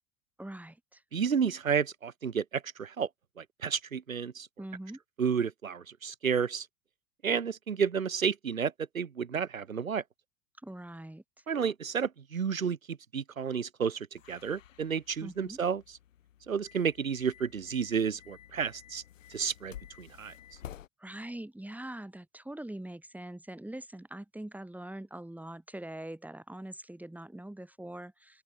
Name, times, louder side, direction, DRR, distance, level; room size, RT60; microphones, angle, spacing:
voice 1, 0.4-1.0 4.6-5.0 10.6-11.2 15.2-15.6 21.0-28.4, right 1 dB, 5° right, 6.2 m, -43 dB
voice 2, 1.1-3.1 3.4-4.5 5.2-6.7 7.2-10.0 11.5-15.8 16.5-19.0 19.3-20.3, right 6 dB, 80° right, 2.7 m, -31 dB
sound 1, 14.1-20.9, left 11 dB, 70° left, 7.6 m, -52 dB
open air
figure-of-eight pair, 80°, 40 cm